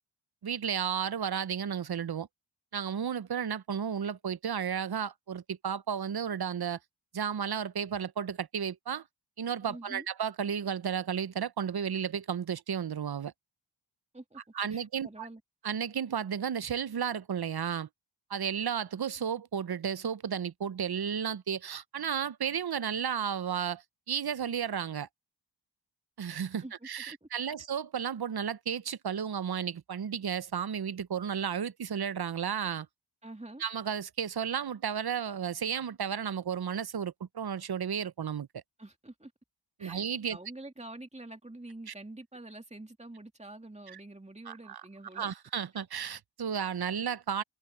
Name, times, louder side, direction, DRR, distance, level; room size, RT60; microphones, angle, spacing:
voice 1, 0.4-2.3 2.7-6.8 7.1-9.0 9.4-13.3 14.5-15.3 15.6-17.9 18.3-25.1 26.2-32.9 33.6-38.6 39.8-40.4 41.9-42.0 44.5-44.8 45.1-47.4, right 8 dB, 50° right, 0.7 m, -33 dB
voice 2, 9.7-10.1 14.1-14.4 14.7-15.4 26.6-27.5 33.2-33.6 38.8-39.3 39.8-40.0 40.3-45.3 45.7-45.8, right 2 dB, 15° right, 2.4 m, -47 dB
wide cardioid pair, 55°, 49 cm